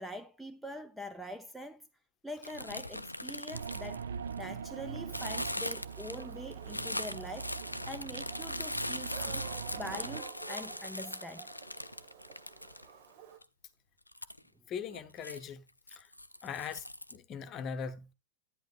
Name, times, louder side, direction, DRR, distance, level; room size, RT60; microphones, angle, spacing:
voice 1, 0.0-1.9 2.2-4.1 4.4-7.6 7.9-9.5 9.8-11.5, equal, 5° right, 0.6 m, -44 dB
sound 1, 2.4-4.6 5.1-13.1 13.4-13.5 14.1-14.4 14.9-15.4 15.9-17.2, left 1 dB, 85° left, 0.4 m, -40 dB
sound 2, 3.5-10.2, right 7 dB, 65° right, 0.4 m, -42 dB
Dog, 4.7-13.4, right 8 dB, 50° right, 1.3 m, -52 dB
voice 2, 14.7-15.6 15.9-16.1 16.4-16.9 17.1-18.1, left 7 dB, 30° left, 0.9 m, -40 dB
11.0 x 9.8 x 2.4 m
figure-of-eight pair, 90°, 0 cm